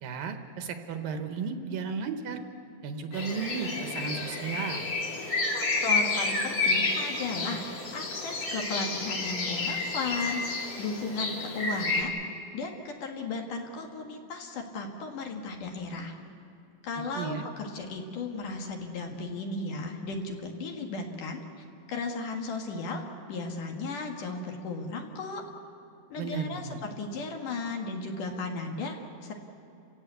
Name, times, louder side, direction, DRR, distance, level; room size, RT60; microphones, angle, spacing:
voice 1, 0.0-2.4 2.8-4.8 17.2-17.5 26.2-26.8, right 5 dB, 75° right, 7 dB, 3.1 m, -34 dB
sound 1, 3.1-12.0, left 3 dB, 45° left, 3.9 m, -30 dB
voice 2, 5.5-7.7 7.9-12.2 12.5-16.1 16.8-21.4 21.9-23.0 23.3-25.4 26.1-29.3, left 3 dB, 65° left, 3 dB, 3.2 m, -35 dB
30.0 x 16.5 x 8.3 m, 2.8 s
omnidirectional pair, 4.2 m